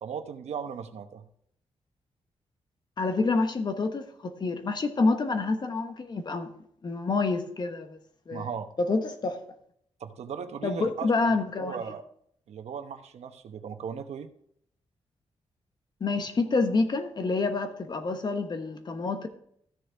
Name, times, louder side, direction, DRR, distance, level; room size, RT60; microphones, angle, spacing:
voice 1, 0.0-1.2 8.3-8.7 10.0-12.0 12.5-14.3, right 7 dB, 85° right, 8 dB, 1.0 m, -37 dB
voice 2, 3.0-6.5 6.8-8.0 8.3-8.5 8.8-9.4 10.6-11.7 16.0-19.3, left 3 dB, 40° left, 7 dB, 1.2 m, -27 dB
14.0 x 6.6 x 3.5 m, 0.67 s
wide cardioid pair, 155°, 11 cm